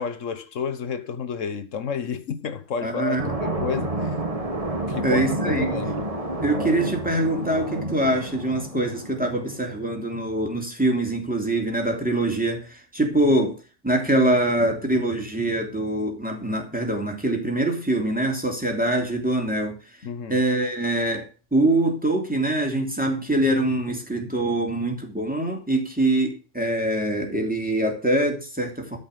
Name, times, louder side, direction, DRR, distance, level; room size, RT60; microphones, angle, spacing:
voice 1, 0.0-4.2 4.9-6.1 20.0-20.4, left 6 dB, 90° left, 1.5 m, -31 dB
voice 2, 2.8-3.3 5.0-5.7 6.4-13.5 13.8-19.8 20.3-21.2 21.5-29.0, right 1 dB, 5° right, 3.0 m, -24 dB
Eurofighter Typhoon, 3.2-9.6, right 2 dB, 30° right, 1.9 m, -29 dB
13.0 x 5.6 x 8.1 m
omnidirectional pair, 1.3 m